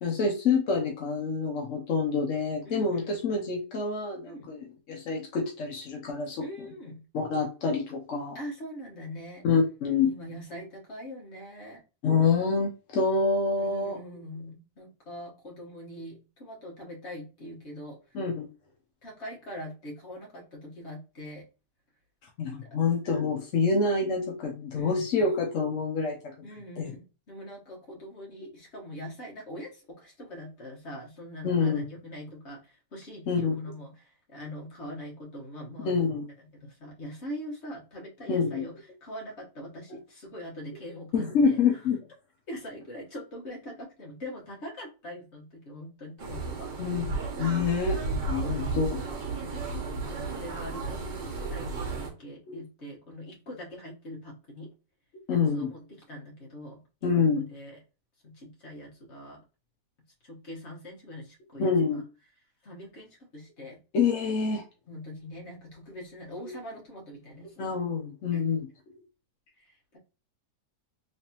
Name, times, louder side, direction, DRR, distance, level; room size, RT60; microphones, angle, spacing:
voice 1, 0.0-6.5 7.1-8.4 9.4-10.1 12.0-14.0 18.1-18.5 22.4-26.3 26.8-26.9 31.4-31.8 33.3-33.5 35.8-36.3 38.3-38.6 41.1-42.0 46.8-48.0 48.3-49.0 52.5-52.6 55.3-55.7 57.0-57.4 61.6-62.0 63.9-64.6 66.4-66.5 67.6-68.7, left 4 dB, 60° left, 0 dB, 0.8 m, -27 dB
voice 2, 2.6-3.1 4.2-4.4 6.4-7.0 8.3-9.4 10.0-11.8 13.6-18.2 19.0-21.4 22.6-22.7 24.7-25.0 26.4-36.0 36.5-41.8 42.5-46.7 48.3-48.7 49.3-49.6 50.2-54.7 55.3-57.1 57.5-57.8 58.2-59.4 60.2-62.0 62.6-63.8 64.9-67.8 68.3-68.4 69.6-70.0, equal, 40° left, -2 dB, 1.4 m, -43 dB
sound 1, 46.2-52.1, right 3 dB, 75° right, 1.5 m, -33 dB
3.3 x 3.2 x 2.8 m, 0.32 s
omnidirectional pair, 1.9 m